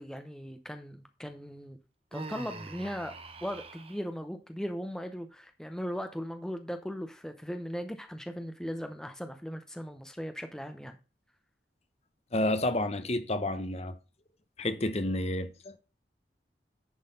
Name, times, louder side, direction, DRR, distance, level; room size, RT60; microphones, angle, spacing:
voice 1, 0.0-1.8 2.1-11.0, equal, 5° left, 0.7 m, -38 dB
Human voice, 2.1-4.0, right 3 dB, 35° right, 0.8 m, -44 dB
voice 2, 12.3-13.9 14.6-15.8, left 1 dB, 35° left, 0.9 m, -30 dB
10.5 x 4.0 x 5.3 m
head